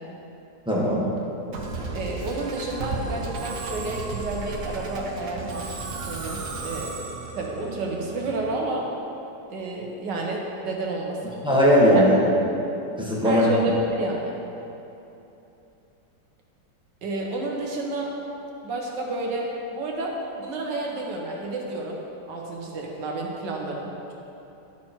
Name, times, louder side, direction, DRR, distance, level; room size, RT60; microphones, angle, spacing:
voice 1, 0.6-1.1 11.4-12.3 13.0-13.4, equal, 5° right, -6 dB, 1.5 m, -18 dB
Musical instrument, 1.5-8.9, right 3 dB, 55° right, 1.2 m, -34 dB
voice 2, 1.9-5.8 6.1-7.0 7.3-8.9 9.5-11.4 11.9-12.0 13.2-14.4 17.0-18.1 18.6-20.1 20.4-22.0 22.3-24.1, right 2 dB, 70° right, -1 dB, 1.9 m, -30 dB
12.0 x 6.2 x 4.5 m, 2.9 s
omnidirectional pair, 1.9 m